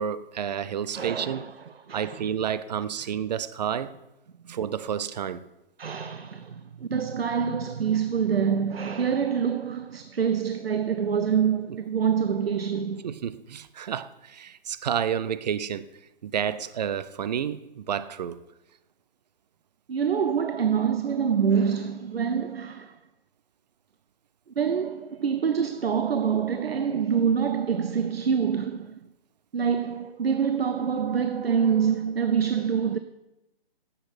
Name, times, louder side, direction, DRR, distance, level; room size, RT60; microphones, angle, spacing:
voice 1, 0.0-1.5 1.9-3.9 4.5-5.4 13.0-15.9 16.2-18.4, right 8 dB, 45° right, 0.6 m, -30 dB
voice 2, 0.9-1.5 1.9-2.3 4.4-4.6 5.8-13.1 19.9-23.0 24.6-29.0 29.5-33.0, right 7 dB, 85° right, 0.8 m, -26 dB
11.0 x 7.7 x 6.1 m
hypercardioid pair, 145°, 29 cm